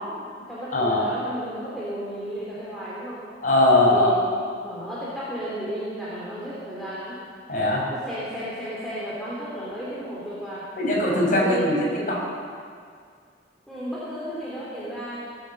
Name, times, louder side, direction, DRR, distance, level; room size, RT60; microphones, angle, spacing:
voice 1, 0.0-3.2 3.9-4.3 4.6-7.2 7.9-10.6 11.4-12.0 13.7-15.2, right 1 dB, ahead, -9 dB, 3.4 m, -33 dB
voice 2, 0.7-1.1 3.4-4.1 7.5-7.9 10.8-11.8 12.1-12.2, left 1 dB, 50° left, -3 dB, 5.5 m, -20 dB
19.0 x 9.5 x 7.8 m, 2.1 s
head